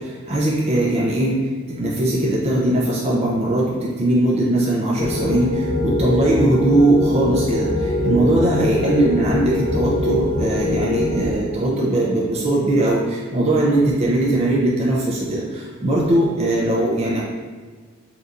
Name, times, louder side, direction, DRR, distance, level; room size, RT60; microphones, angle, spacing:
voice 1, 0.3-1.3 1.8-3.6 4.0-5.5 5.8-7.7 8.0-13.0 13.3-15.0 15.3-15.4 15.8-17.2, right 1 dB, 30° right, -5 dB, 0.5 m, -19 dB
sound 1, 5.0-11.3, left 2 dB, 75° left, 0.6 m, -23 dB
4.2 x 2.6 x 2.4 m, 1.5 s
head